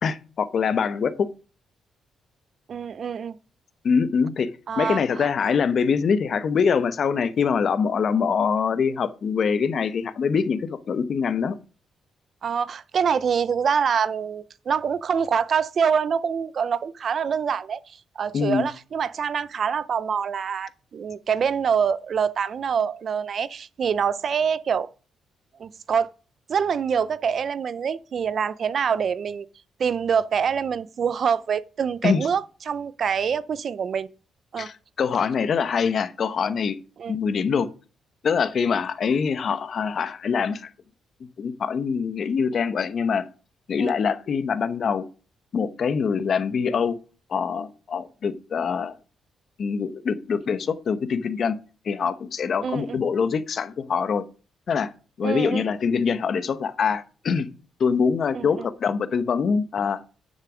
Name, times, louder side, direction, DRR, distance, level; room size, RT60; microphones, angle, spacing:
voice 1, 0.0-1.3 3.8-4.5 4.8-11.6 18.3-18.6 32.0-32.3 34.6-36.8 37.1-37.7 38.2-40.7 41.4-43.2 43.7-45.0 45.5-47.0 47.3-49.0 49.6-51.6 51.9-54.2 54.7-54.9 55.2-57.5 57.8-60.0, left 6 dB, 50° left, 0.9 m, -24 dB
voice 2, 2.7-3.4 4.7-5.3 12.4-24.9 25.6-26.1 26.5-29.5 29.8-34.1 34.5-34.7 37.0-37.2 43.8-43.9 52.6-53.0 55.2-55.6 58.3-58.7, right 7 dB, 50° right, 0.5 m, -25 dB
10.5 x 6.6 x 5.0 m
cardioid pair, 120°, 0 cm